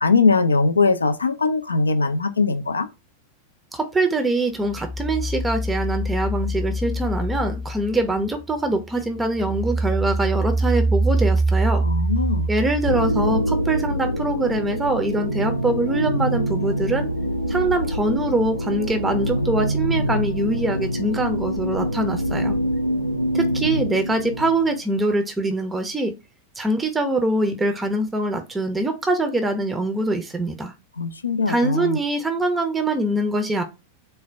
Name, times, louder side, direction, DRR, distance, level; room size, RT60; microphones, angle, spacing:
voice 1, 0.0-2.9 11.8-12.5 31.0-32.0, left 4 dB, 75° left, 0.4 m, -20 dB
voice 2, 3.7-11.8 12.5-17.1 17.5-22.6 23.3-26.1 26.6-30.7 31.5-33.6, right 2 dB, 10° right, 0.5 m, -23 dB
sound 1, 4.6-8.5 8.9-13.5, right 2 dB, 20° left, 0.7 m, -24 dB
sound 2, 12.8-24.8, equal, 90° right, 0.4 m, -25 dB
4.0 x 2.1 x 3.3 m
figure-of-eight pair, 90°, 0 cm